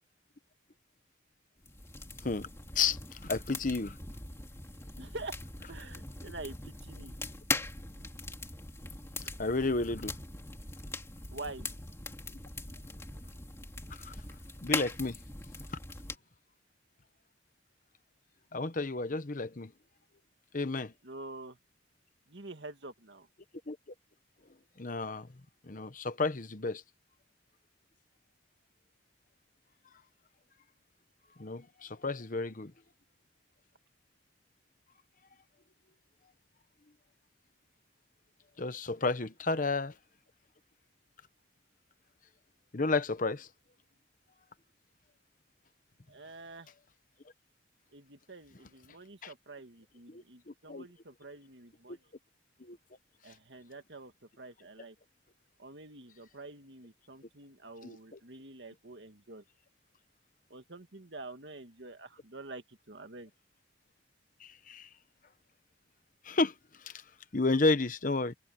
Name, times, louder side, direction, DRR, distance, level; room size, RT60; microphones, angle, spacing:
sound 1, 1.6-16.2, left 2 dB, 15° left, 2.7 m, -41 dB
voice 1, 2.7-4.0 9.2-10.2 13.9-14.1 14.6-15.2 18.5-19.7 20.5-20.9 23.7-23.8 24.8-25.3 25.6-26.8 31.4-32.7 38.6-39.9 42.7-43.5 49.2-49.3 50.1-50.9 52.6-52.8 57.8-58.2 64.4-64.9 66.2-66.5 66.8-67.0 67.3-68.3, left 3 dB, 45° left, 1.0 m, -32 dB
voice 2, 5.0-5.4 5.7-7.1 11.3-11.7 21.0-21.6 22.3-23.3 39.5-39.6 46.1-46.7 47.9-52.1 53.2-55.0 55.6-59.4 60.5-63.3, right 2 dB, 70° right, 2.0 m, -47 dB
head